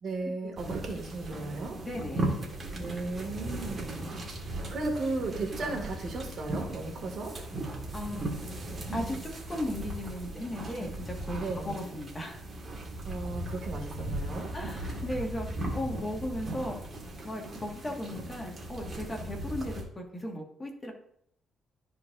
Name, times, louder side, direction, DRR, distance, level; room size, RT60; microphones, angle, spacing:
voice 1, 0.0-1.8 2.7-4.2 4.4-7.4 11.4-11.7 13.0-14.5, right 3 dB, 60° right, 1 dB, 2.0 m, -35 dB
sound 1, 0.6-19.8, right 1 dB, 40° right, 1.8 m, -37 dB
voice 2, 1.8-2.3 7.9-8.3 8.9-12.4 14.5-16.8 17.2-20.9, left 1 dB, 25° left, 1 dB, 1.6 m, -36 dB
13.0 x 4.6 x 2.6 m, 0.70 s
cardioid pair, 90°, 0 cm